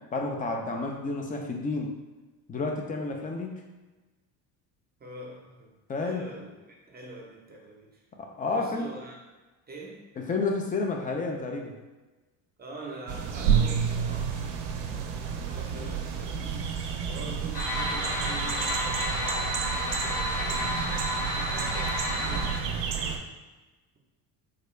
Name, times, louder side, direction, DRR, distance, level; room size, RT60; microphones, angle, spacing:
voice 1, 0.1-1.9 2.5-3.5 5.9-6.3 8.2-8.9 10.2-11.8, left 3 dB, 20° left, 2 dB, 0.3 m, -30 dB
voice 2, 5.0-5.7 6.0-8.0 8.4-9.3 9.7-10.1 12.6-16.4 16.9-23.5, right 2 dB, 20° right, 0 dB, 0.7 m, -45 dB
sound 1, 13.1-23.2, right 7 dB, 55° right, 0.6 m, -30 dB
sound 2, 17.5-22.6, equal, 50° left, 1.0 m, -31 dB
3.7 x 2.2 x 3.1 m, 1.2 s
supercardioid pair, 85°, 50 cm